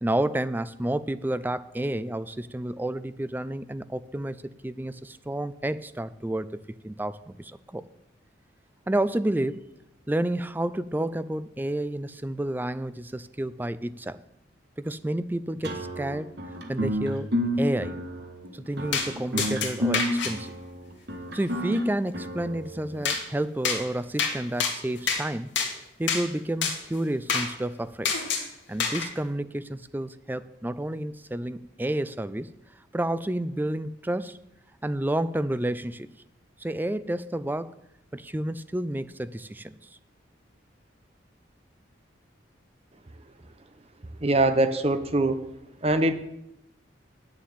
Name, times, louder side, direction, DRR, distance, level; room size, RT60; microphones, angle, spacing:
voice 1, 0.0-4.4 4.6-7.8 8.9-9.7 10.1-14.2 14.8-16.3 16.7-17.3 17.6-18.0 18.5-20.6 21.3-25.5 26.0-28.1 28.7-32.5 32.9-34.4 34.8-36.1 36.6-37.8 38.1-39.7, right 1 dB, 10° right, 15 dB, 0.4 m, -30 dB
sound 1, 15.6-23.1, equal, 60° right, 1.6 m, -31 dB
sound 2, 18.9-19.1 19.4-20.3 23.1-23.2 23.6-23.8 24.2-24.3 24.6-25.2 25.6-25.7 26.1-26.2 26.6-26.8 27.3-27.5 28.1-28.5 28.8-29.1, left 5 dB, 70° left, 2.2 m, -26 dB
voice 2, 44.2-45.4 45.8-46.1, right 2 dB, 30° right, 9 dB, 0.9 m, -22 dB
9.0 x 7.3 x 9.0 m, 0.83 s
head